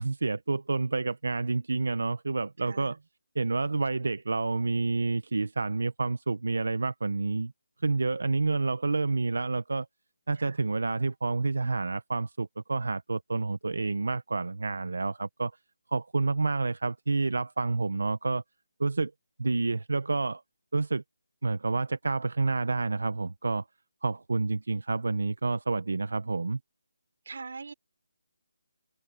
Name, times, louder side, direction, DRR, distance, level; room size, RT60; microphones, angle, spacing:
voice 1, 0.0-3.0 3.3-7.5 7.8-9.9 10.3-15.5 15.9-18.4 18.8-19.1 19.4-20.4 20.7-21.0 21.4-23.6 24.0-26.6, right 3 dB, 65° right, 1.0 m, -29 dB
voice 2, 2.6-3.0 10.3-10.6 27.3-27.7, right 4 dB, 45° right, 3.7 m, -42 dB
hypercardioid pair, 180°, 0 cm